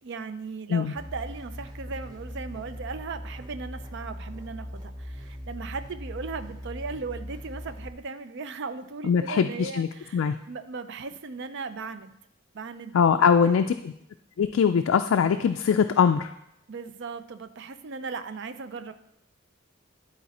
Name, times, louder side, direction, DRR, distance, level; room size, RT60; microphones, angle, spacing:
voice 1, 0.0-12.1 12.5-13.0 13.4-13.5 16.7-18.9, right 4 dB, 55° right, 11 dB, 0.5 m, -37 dB
sound 1, 0.9-7.9, equal, 20° right, 1.0 m, -40 dB
voice 2, 9.0-10.4 12.9-13.9 14.4-16.3, left 6 dB, 65° left, 6 dB, 0.3 m, -22 dB
11.0 x 4.1 x 4.2 m, 0.79 s
head